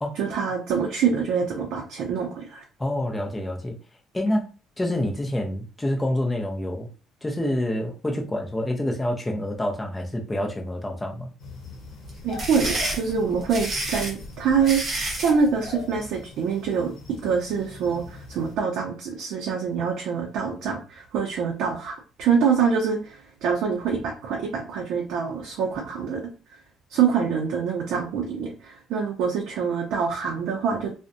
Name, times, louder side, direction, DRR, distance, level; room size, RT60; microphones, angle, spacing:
voice 1, 0.2-2.6 12.2-14.8 15.2-16.9 17.2-26.2 26.9-30.9, right 6 dB, 70° right, 1 dB, 0.4 m, -25 dB
voice 2, 2.8-3.8 4.1-4.5 4.8-6.9 7.2-11.3, left 1 dB, 10° left, 1 dB, 0.5 m, -27 dB
sound 1, 11.4-18.6, left 3 dB, 60° left, 0.8 m, -42 dB
sound 2, 12.1-15.4, right 1 dB, 40° right, 0.9 m, -29 dB
2.5 x 2.1 x 2.5 m, 0.34 s
cardioid pair, 165°, 0 cm